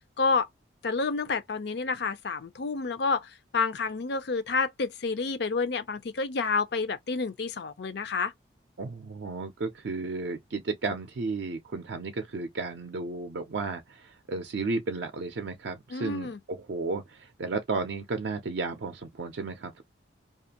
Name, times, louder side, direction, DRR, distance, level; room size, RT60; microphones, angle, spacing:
voice 1, 0.2-0.5 0.8-8.3 15.9-16.4, left 4 dB, 60° left, 0.5 m, -29 dB
voice 2, 8.8-19.8, right 3 dB, 60° right, 0.4 m, -33 dB
2.5 x 2.4 x 2.8 m
head